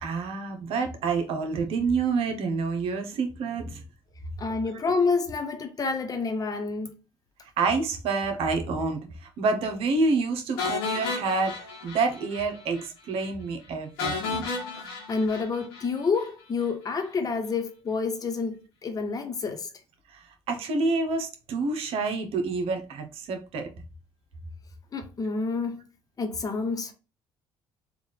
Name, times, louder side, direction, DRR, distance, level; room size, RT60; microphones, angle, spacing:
voice 1, 0.0-3.8 7.6-14.5 20.1-23.7, right 4 dB, 70° right, 0.9 m, -28 dB
voice 2, 4.4-6.9 15.1-19.7 24.9-25.8 26.2-26.9, left 4 dB, 35° left, 1.0 m, -28 dB
sound 1, 10.6-12.5 12.7-12.9 13.2-13.3 14.0-16.3, left 4 dB, 90° left, 1.3 m, -33 dB
3.6 x 2.5 x 3.3 m
supercardioid pair, 70°, 10 cm